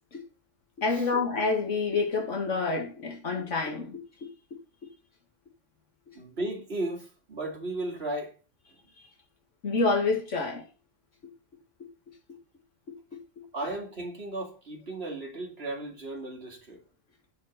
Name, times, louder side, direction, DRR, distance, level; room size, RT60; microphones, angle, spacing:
voice 1, 0.8-4.3 9.6-10.6 13.1-13.4, left 3 dB, 75° left, 2.1 m, -28 dB
voice 2, 6.1-8.4 13.5-16.8, right 2 dB, 55° right, 2.5 m, -35 dB
9.3 x 5.5 x 5.2 m
omnidirectional pair, 1.3 m